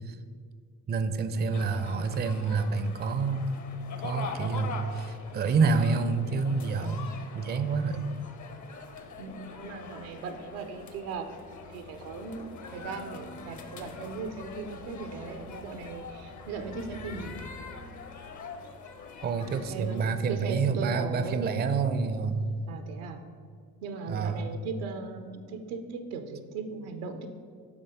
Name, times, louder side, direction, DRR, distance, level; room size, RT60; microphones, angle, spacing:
voice 1, 0.9-3.6 4.0-8.1 19.2-22.4 24.1-24.5, right 4 dB, 25° right, 10 dB, 0.4 m, -28 dB
sound 1, 1.5-20.2, left 5 dB, 45° left, 0.8 m, -44 dB
sound 2, 8.9-22.7, left 2 dB, 70° left, 1.4 m, -51 dB
voice 2, 9.2-17.4 19.5-21.6 22.7-23.2 23.8-27.3, right 4 dB, 80° right, 7 dB, 0.7 m, -38 dB
7.2 x 3.9 x 5.0 m, 2.2 s
hypercardioid pair, 45°, 42 cm